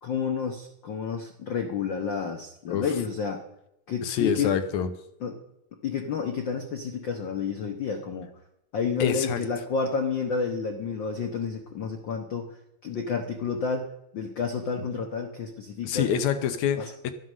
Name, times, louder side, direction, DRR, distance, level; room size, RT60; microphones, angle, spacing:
voice 1, 0.0-3.4 3.9-4.5 5.2-5.4 5.8-8.3 8.7-12.5 12.8-16.1, left 5 dB, 55° left, 4 dB, 1.3 m, -30 dB
voice 2, 4.0-4.9 9.0-9.4 15.8-17.1, left 8 dB, 75° left, 9 dB, 2.3 m, -26 dB
13.0 x 9.5 x 6.4 m, 0.82 s
omnidirectional pair, 3.4 m